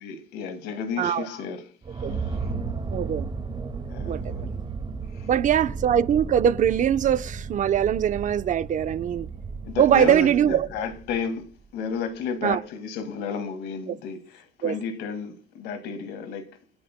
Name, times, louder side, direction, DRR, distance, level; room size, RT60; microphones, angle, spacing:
voice 1, 0.0-2.5 3.9-4.4 5.1-5.3 9.6-16.5, left 5 dB, 85° left, 2.1 m, -33 dB
sound 1, 1.8-11.4, right 4 dB, 30° right, 1.9 m, -34 dB
voice 2, 2.9-3.3 4.1-4.5 5.3-9.3 9.8-10.7 12.4-12.6 14.6-14.8, right 9 dB, 50° right, 0.7 m, -22 dB
28.5 x 9.9 x 2.2 m
cardioid pair, 110°, 17 cm